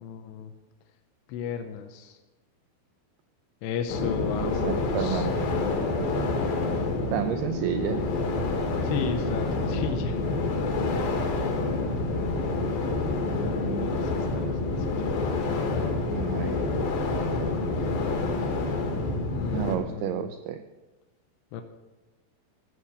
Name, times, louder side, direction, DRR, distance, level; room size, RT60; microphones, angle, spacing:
voice 1, 0.0-0.5 1.3-2.2 3.6-5.3 8.8-10.2 13.4-14.6 15.0-15.1 17.3-17.8 19.3-20.3 21.5-21.6, left 7 dB, 80° left, 6 dB, 2.9 m, -35 dB
sound 1, 3.9-19.8, left 3 dB, 60° left, 3.1 m, -28 dB
voice 2, 4.4-5.5 6.0-6.3 7.1-8.0 13.3-14.0 16.0-16.7 19.5-20.6, right 11 dB, 85° right, 9 dB, 2.2 m, -32 dB
15.0 x 6.4 x 8.6 m, 1.1 s
omnidirectional pair, 5.2 m